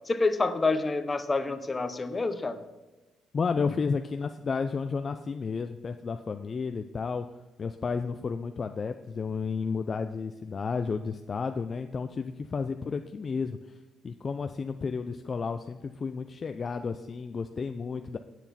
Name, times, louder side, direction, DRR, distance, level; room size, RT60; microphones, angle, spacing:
voice 1, 0.1-2.6, left 3 dB, 25° left, 10 dB, 0.8 m, -27 dB
voice 2, 3.3-7.3 7.6-18.2, left 5 dB, 40° left, 7 dB, 0.4 m, -32 dB
9.1 x 8.0 x 4.3 m, 1.1 s
cardioid pair, 90°, 0 cm